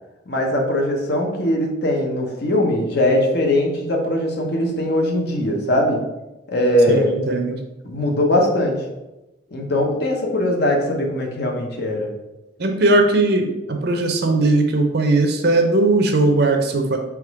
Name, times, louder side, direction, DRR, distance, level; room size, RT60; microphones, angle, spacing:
voice 1, 0.3-6.0 6.5-7.1 7.8-8.8 9.5-12.1, left 1 dB, 55° left, 1 dB, 0.8 m, -20 dB
voice 2, 6.9-7.6 12.6-17.0, right 2 dB, 55° right, 4 dB, 0.6 m, -18 dB
3.6 x 3.0 x 4.7 m, 0.98 s
head